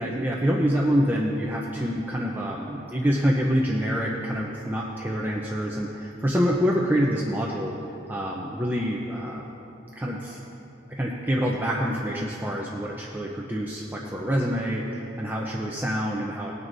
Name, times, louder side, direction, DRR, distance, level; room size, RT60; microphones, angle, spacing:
voice 1, 0.0-7.8 8.1-9.4 10.0-10.4 10.9-16.5, equal, 10° right, -3 dB, 0.6 m, -26 dB
19.0 x 9.4 x 2.7 m, 2.8 s
head